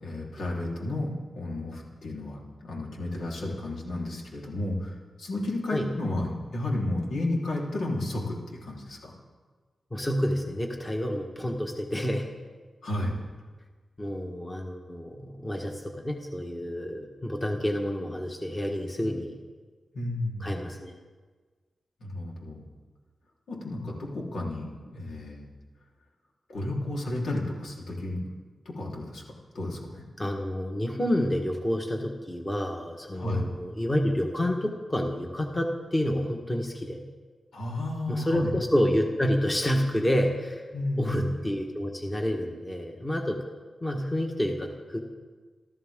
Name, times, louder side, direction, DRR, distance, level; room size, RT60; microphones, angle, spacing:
voice 1, 0.0-9.1 12.8-13.2 19.9-20.5 22.0-22.6 23.5-25.5 26.5-28.2 28.7-29.2 29.5-30.0 33.1-33.5 37.5-38.5 40.7-41.3, left 1 dB, 90° left, -3 dB, 4.0 m, -32 dB
voice 2, 9.9-12.3 14.0-19.4 20.4-20.9 30.2-37.0 38.1-40.6 41.0-43.4 43.8-45.0, equal, 15° left, 2 dB, 1.5 m, -29 dB
28.5 x 13.5 x 3.8 m, 1.4 s
wide cardioid pair, 155°, 0 cm